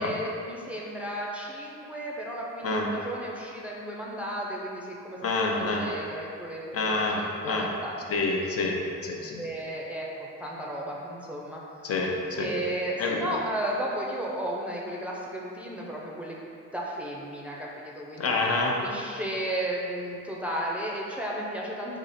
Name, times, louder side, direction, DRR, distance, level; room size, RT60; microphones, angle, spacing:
voice 1, 0.0-5.3 5.6-7.9 9.4-11.6 12.4-16.4 16.7-18.3 18.8-22.0, right 1 dB, 5° right, -4 dB, 0.6 m, -34 dB
voice 2, 5.2-5.9 6.7-7.2 7.5-7.7 8.1-9.4 11.8-12.5 13.0-13.3 18.2-18.8, left 3 dB, 50° left, 0 dB, 0.7 m, -27 dB
3.6 x 2.9 x 4.2 m, 2.5 s
cardioid pair, 90°, 30 cm